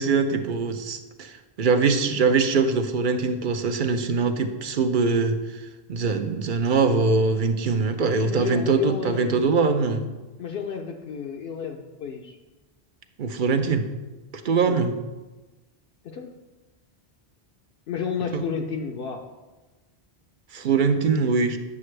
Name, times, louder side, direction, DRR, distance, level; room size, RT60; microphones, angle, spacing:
voice 1, 0.0-10.1 13.2-13.9 14.4-14.9 18.3-18.4 20.5-21.6, right 4 dB, 55° right, 8 dB, 0.7 m, -23 dB
voice 2, 8.0-9.6 10.4-12.4 14.6-14.8 16.0-16.3 17.9-19.2, left 6 dB, 70° left, 1 dB, 0.8 m, -32 dB
9.5 x 6.7 x 3.2 m, 1.2 s
omnidirectional pair, 1.1 m